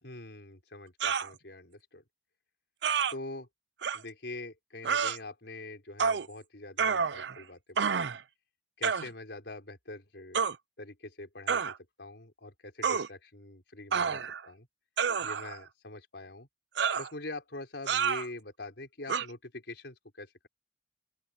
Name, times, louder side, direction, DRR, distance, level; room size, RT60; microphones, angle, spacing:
voice 1, 0.0-2.0 3.1-3.5 3.9-8.1 8.8-10.4 10.8-14.2 14.5-14.7 15.2-16.5 17.0-20.5, left 2 dB, 70° left, 4.7 m, -44 dB
sound 1, 1.0-1.3 2.8-3.1 3.8-4.0 4.8-5.2 6.0-6.3 6.8-7.4 7.8-8.2 8.8-9.1 10.3-10.6 11.5-11.7 12.8-13.1 13.9-14.5 15.0-15.6 16.8-17.1 17.9-18.3 19.1-19.3, right 6 dB, 75° right, 0.6 m, -29 dB
open air
head